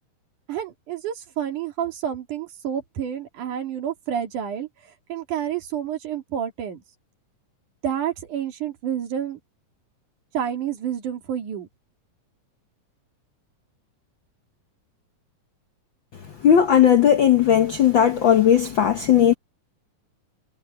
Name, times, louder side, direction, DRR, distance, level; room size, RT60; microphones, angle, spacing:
voice 1, 0.5-4.7 5.1-6.8 7.8-9.4 10.3-11.7, right 9 dB, 75° right, 3.9 m, -29 dB
voice 2, 16.4-19.3, left 9 dB, 80° left, 1.1 m, -17 dB
omnidirectional pair, 3.6 m